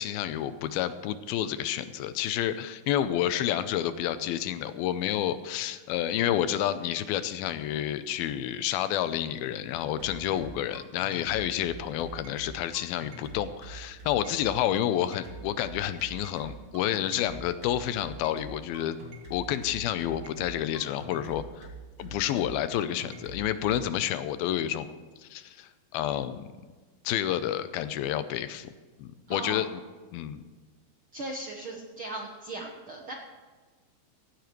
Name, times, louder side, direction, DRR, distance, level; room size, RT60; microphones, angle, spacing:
voice 1, 0.0-19.0 19.3-21.7 22.0-24.9 25.2-26.4 27.0-28.7 29.0-29.7 30.1-30.4, left 11 dB, 85° left, 12 dB, 2.5 m, -29 dB
sound 1, 9.7-23.8, right 3 dB, 40° right, 3.3 m, -44 dB
voice 2, 29.3-29.6 31.1-33.1, right 2 dB, 65° right, 0 dB, 1.3 m, -37 dB
16.5 x 15.0 x 3.1 m, 1.4 s
omnidirectional pair, 4.3 m